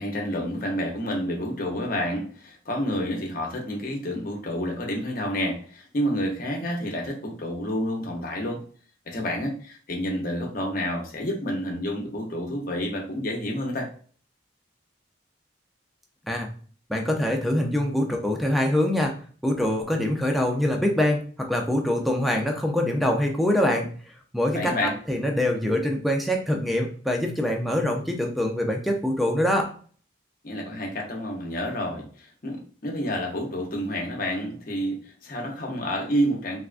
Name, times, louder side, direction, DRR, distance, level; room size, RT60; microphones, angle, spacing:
voice 1, 0.0-8.6 9.1-13.9 24.5-24.9 30.4-36.6, equal, 50° left, 0 dB, 0.7 m, -29 dB
voice 2, 16.9-19.1 19.4-23.9 24.3-29.7, left 1 dB, ahead, 2 dB, 0.4 m, -24 dB
3.4 x 2.2 x 2.4 m, 0.44 s
head